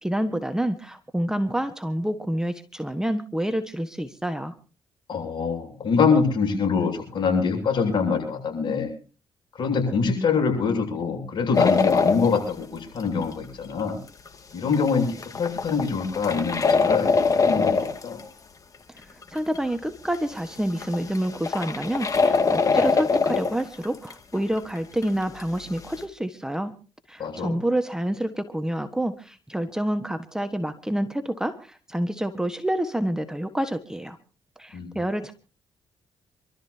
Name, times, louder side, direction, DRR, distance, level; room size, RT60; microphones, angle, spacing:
voice 1, 0.0-4.5 18.9-26.7 27.1-34.2 34.6-35.3, right 1 dB, 5° right, 8 dB, 1.4 m, -28 dB
voice 2, 5.1-8.9 9.6-14.0 14.5-18.2 27.2-27.5 34.7-35.0, left 5 dB, 60° left, 2 dB, 7.7 m, -24 dB
sound 1, 11.5-12.4 13.0-13.4 13.9-14.0 14.3-14.4 14.7-18.2 19.2-19.3 19.5-19.6 20.1-20.2 20.6-24.8 25.0-25.4 25.8-25.9, left 4 dB, 40° left, 2.3 m, -23 dB
27.5 x 13.0 x 2.9 m, 0.34 s
cardioid pair, 75°, 9 cm